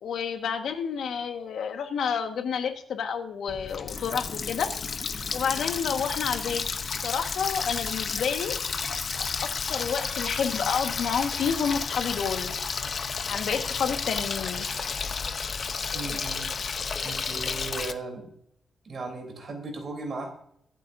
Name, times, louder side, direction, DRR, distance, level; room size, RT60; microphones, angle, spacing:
voice 1, 0.0-4.7 5.3-6.6 7.0-8.5 9.4-12.5 13.3-14.7, left 6 dB, 70° left, 5 dB, 1.5 m, -29 dB
Water tap faucet, 3.5-17.9, left 5 dB, 40° left, 0.8 m, -32 dB
voice 2, 15.9-16.5 17.0-18.3 18.8-20.3, right 3 dB, 40° right, 3 dB, 3.5 m, -36 dB
23.0 x 8.3 x 2.7 m, 0.69 s
wide cardioid pair, 170°, 0 cm